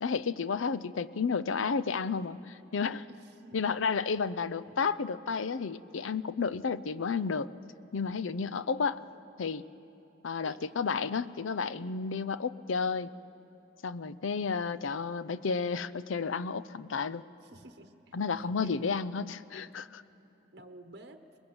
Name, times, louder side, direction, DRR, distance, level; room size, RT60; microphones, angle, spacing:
voice 1, 0.0-3.0 3.5-7.5 7.9-9.0 9.4-9.6 10.2-13.1 13.8-17.2 18.1-20.0, left 5 dB, 85° left, 14 dB, 0.6 m, -32 dB
voice 2, 3.1-3.6 4.7-4.8 9.1-9.2 10.4-10.8 17.4-18.8 20.5-21.2, right 2 dB, 55° right, 6 dB, 1.0 m, -52 dB
24.0 x 21.0 x 7.9 m, 2.8 s
head